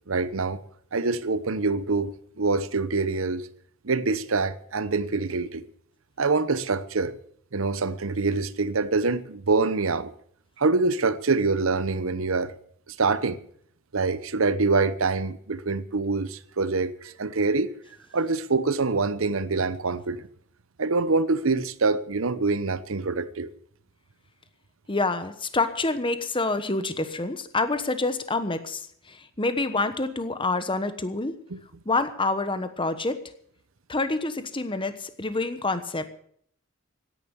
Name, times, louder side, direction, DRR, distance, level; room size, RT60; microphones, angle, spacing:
voice 1, 0.1-0.6 0.9-3.5 3.8-5.6 6.2-7.1 7.5-10.1 10.6-12.5 12.9-13.4 13.9-17.7 18.1-20.3 20.8-23.5 31.5-31.6, right 3 dB, 75° right, 0.9 m, -25 dB
voice 2, 24.9-31.3 31.8-33.2 33.9-36.1, left 3 dB, 25° left, 1.2 m, -27 dB
16.5 x 10.5 x 7.0 m
head